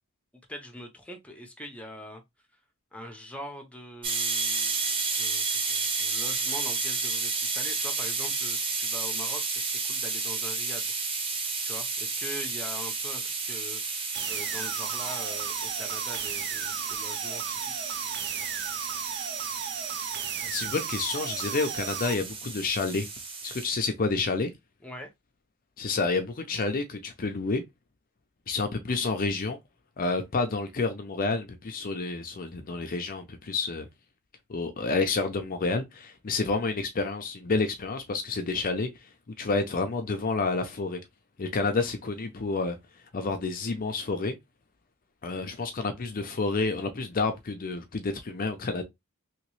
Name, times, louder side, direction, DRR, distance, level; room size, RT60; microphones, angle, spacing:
voice 1, 0.5-2.2 2.9-10.9 11.6-13.8 14.3-17.9 24.8-25.1, left 1 dB, 5° left, 0.7 m, -43 dB
sound 1, 4.0-23.7, right 4 dB, 25° right, 0.9 m, -32 dB
sound 2, 14.1-22.1, right 8 dB, 50° right, 0.5 m, -35 dB
voice 2, 20.4-23.1 23.4-24.5 25.8-27.6 28.5-29.6 30.0-33.9 34.5-38.9 39.4-41.0 41.4-42.8 43.1-44.3 45.2-48.8, left 3 dB, 40° left, 0.5 m, -29 dB
3.1 x 3.0 x 3.1 m
head